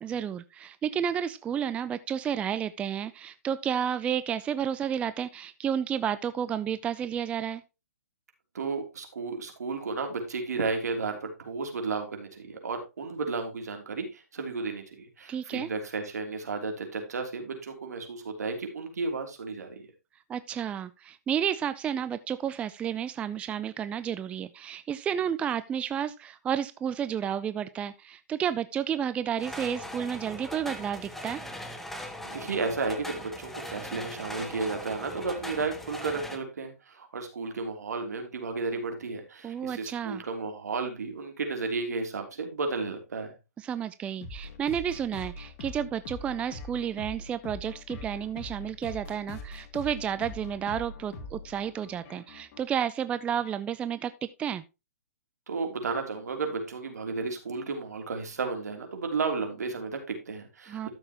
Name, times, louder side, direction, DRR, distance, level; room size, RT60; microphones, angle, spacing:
voice 1, 0.0-7.6 15.3-15.7 20.3-31.4 39.4-40.2 43.6-54.1 54.4-54.6 60.7-60.9, right 8 dB, 15° right, 14 dB, 0.4 m, -31 dB
voice 2, 8.5-19.9 32.2-43.3 55.5-60.9, right 4 dB, 75° right, 4 dB, 3.2 m, -33 dB
sound 1, 29.4-36.4, left 1 dB, 5° left, 1.1 m, -40 dB
sound 2, 44.2-52.6, left 2 dB, 40° left, 2.5 m, -43 dB
12.5 x 7.1 x 3.0 m, 0.26 s
hypercardioid pair, 135°, 9 cm